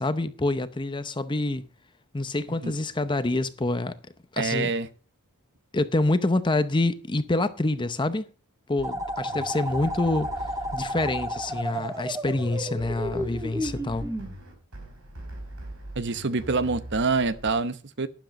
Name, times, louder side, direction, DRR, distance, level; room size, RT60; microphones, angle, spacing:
voice 1, 0.0-1.6 2.1-4.0 4.3-4.7 5.7-8.3 8.7-10.3 10.7-14.1, left 2 dB, 20° left, 0.7 m, -26 dB
voice 2, 4.4-4.9 16.0-18.1, right 4 dB, 50° right, 0.9 m, -26 dB
sound 1, 8.8-14.3, equal, 15° right, 1.5 m, -32 dB
sound 2, 8.8-17.5, right 1 dB, 70° right, 4.9 m, -42 dB
12.0 x 10.5 x 5.2 m
head